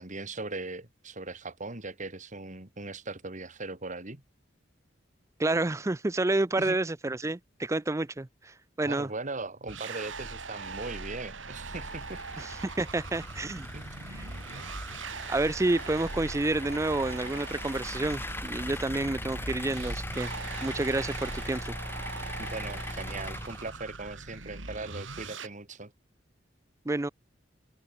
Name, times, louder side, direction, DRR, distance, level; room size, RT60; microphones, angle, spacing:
voice 1, 0.0-4.2 6.6-6.8 8.8-12.5 13.7-13.9 22.4-25.9, right 3 dB, 40° right, 2.6 m, -39 dB
voice 2, 5.4-9.1 12.4-13.7 15.3-20.3 20.6-21.8 26.9-27.1, right 2 dB, 15° right, 0.5 m, -29 dB
sound 1, 9.7-25.5, right 4 dB, 80° right, 3.4 m, -41 dB
sound 2, 11.7-24.0, left 1 dB, 10° left, 2.3 m, -40 dB
head